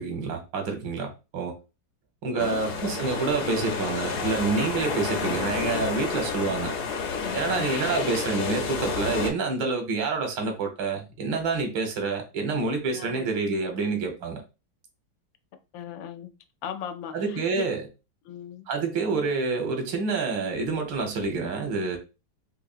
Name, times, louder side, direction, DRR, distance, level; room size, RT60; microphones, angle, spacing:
voice 1, 0.0-1.6 2.2-6.7 7.3-14.4 17.1-17.8 18.7-22.0, right 4 dB, 85° right, 1.7 m, -28 dB
voice 2, 2.3-2.9 5.7-5.8 7.2-7.7 12.9-13.2 15.7-16.3 16.6-17.7 18.2-18.7, left 8 dB, 90° left, 1.3 m, -38 dB
sound 1, 2.4-9.3, left 5 dB, 65° left, 1.2 m, -30 dB
4.1 x 2.8 x 2.4 m
omnidirectional pair, 2.0 m